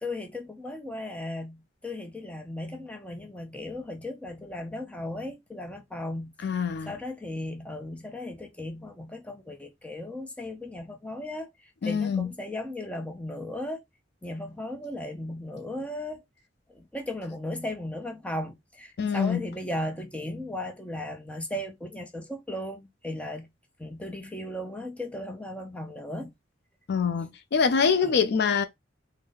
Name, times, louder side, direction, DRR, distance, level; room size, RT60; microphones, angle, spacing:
voice 1, 0.0-6.5 6.8-13.8 14.2-16.2 16.7-23.5 23.8-26.3 28.0-28.2, left 1 dB, 5° left, 0.7 m, -36 dB
voice 2, 6.4-7.0 11.8-12.3 19.0-19.4 26.9-28.6, left 6 dB, 60° left, 0.4 m, -25 dB
3.9 x 2.1 x 3.7 m
head